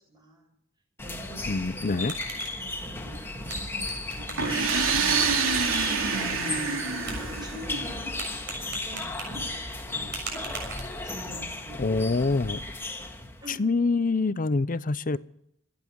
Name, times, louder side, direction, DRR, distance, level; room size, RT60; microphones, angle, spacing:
voice 1, 0.1-0.5 1.0-2.0 2.6-5.6 5.9-6.9 7.4-8.1 8.8-9.4 9.8-10.4 11.0-12.2 13.4-13.6, right 1 dB, 20° right, 1 dB, 6.9 m, -45 dB
sound 1, 1.0-13.5, left 2 dB, 10° left, 1.9 m, -35 dB
voice 2, 1.5-2.1 11.8-12.6 13.5-15.2, left 3 dB, 40° left, 16 dB, 0.6 m, -25 dB
sound 2, 1.7-11.3, right 4 dB, 55° right, 6.7 m, -43 dB
sound 3, 4.4-8.1, right 5 dB, 85° right, 3.0 m, -27 dB
26.5 x 10.5 x 4.6 m, 0.74 s
head